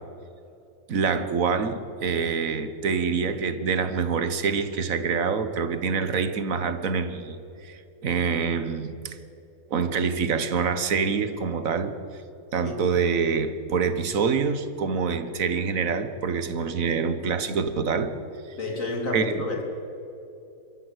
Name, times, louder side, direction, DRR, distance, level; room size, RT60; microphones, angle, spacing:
voice 1, 0.9-7.4 7.6-9.2 9.7-11.9 12.5-18.1 19.1-19.5, right 5 dB, 70° right, 11 dB, 1.6 m, -26 dB
voice 2, 18.6-19.6, left 2 dB, 65° left, 1 dB, 3.5 m, -30 dB
24.0 x 13.5 x 8.1 m, 2.9 s
omnidirectional pair, 1.5 m